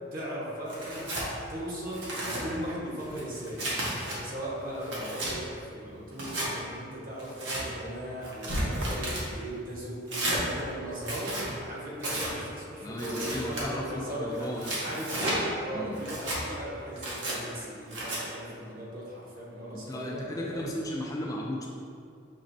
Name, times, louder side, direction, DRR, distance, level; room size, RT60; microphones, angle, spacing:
voice 1, 0.1-1.0 1.5-3.7 4.2-20.9, right 1 dB, 50° right, -6 dB, 1.1 m, -38 dB
Tearing, 0.7-1.3 1.8-2.4 3.0-4.2 4.6-5.3 6.1-6.5 7.2-7.6 8.2-9.2 10.1-10.4 11.0-11.5 12.0-12.3 13.0-13.6 14.4-15.4 16.0-16.4 17.0-17.4 17.9-18.2, right 1 dB, 70° right, 1.1 m, -33 dB
voice 2, 12.8-14.8 15.7-16.0 19.7-21.7, left 1 dB, 20° left, -2 dB, 0.3 m, -35 dB
6.2 x 3.1 x 2.6 m, 2.3 s
head